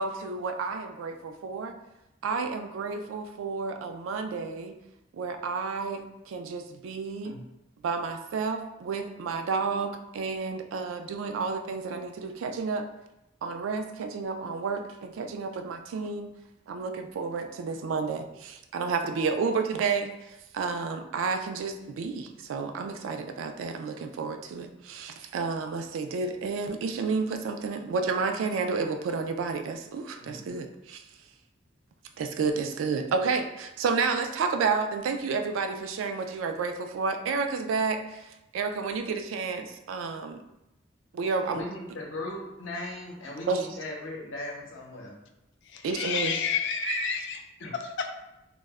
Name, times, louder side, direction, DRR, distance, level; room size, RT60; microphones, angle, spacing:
voice 1, 0.0-1.8 2.2-4.8 5.1-7.4 7.8-12.9 13.4-16.3 16.7-31.0 32.2-40.4 41.1-41.6 43.5-43.7 45.8-46.4 46.8-47.1, right 4 dB, 85° right, 6 dB, 0.3 m, -31 dB
voice 2, 41.5-45.2 47.6-47.7, left 1 dB, 85° left, -2 dB, 0.7 m, -38 dB
voice 3, 45.6-47.4 47.7-48.1, left 7 dB, 65° left, 5 dB, 0.3 m, -30 dB
2.1 x 2.0 x 3.4 m, 0.90 s
head